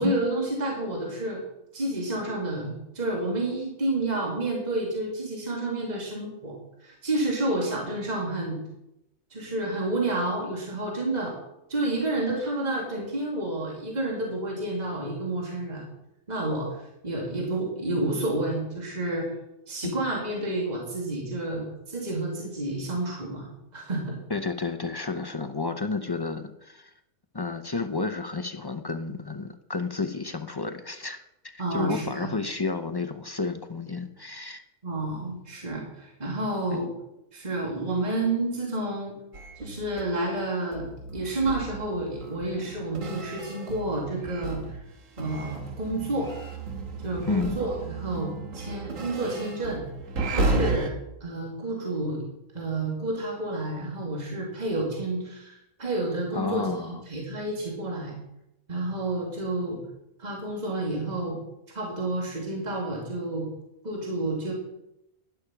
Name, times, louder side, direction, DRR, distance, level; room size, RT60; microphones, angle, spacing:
voice 1, 0.0-1.4 1.7-8.6 9.3-11.3 11.7-15.9 16.3-19.3 19.7-24.2 31.6-32.3 34.8-36.9 37.3-39.1 39.6-40.9 41.1-44.8 45.2-46.3 47.0-49.8 50.3-50.9 51.2-52.2 52.5-58.2 58.7-59.8 60.2-61.4 61.7-63.5 63.8-64.5, right 2 dB, 30° right, -2 dB, 2.7 m, -30 dB
voice 2, 24.3-26.9 27.3-34.6 36.7-36.9 47.3-47.6 56.3-57.0, left 3 dB, 30° left, 7 dB, 0.4 m, -31 dB
sound 1, 39.3-44.9 45.2-50.9, right 2 dB, 65° right, 1.7 m, -33 dB
11.5 x 10.5 x 5.9 m, 0.86 s
omnidirectional pair, 1.5 m